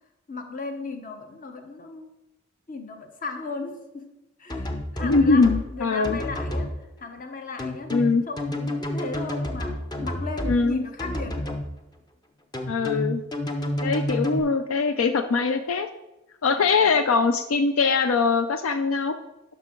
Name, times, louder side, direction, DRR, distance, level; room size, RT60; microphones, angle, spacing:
voice 1, 0.3-2.1 2.7-4.1 4.4-8.0 8.3-11.5 16.5-17.0, left 3 dB, 40° left, 6 dB, 1.0 m, -36 dB
sound 1, 4.5-5.6 6.0-6.7 7.6-10.6 11.0-11.6 12.5-14.4, left 1 dB, 20° left, 0.7 m, -29 dB
voice 2, 5.0-6.2 7.9-8.2 10.5-10.8 12.7-13.2 13.8-15.9 16.4-19.2, left 4 dB, 75° left, 9 dB, 0.5 m, -22 dB
11.0 x 6.0 x 3.8 m, 0.98 s
head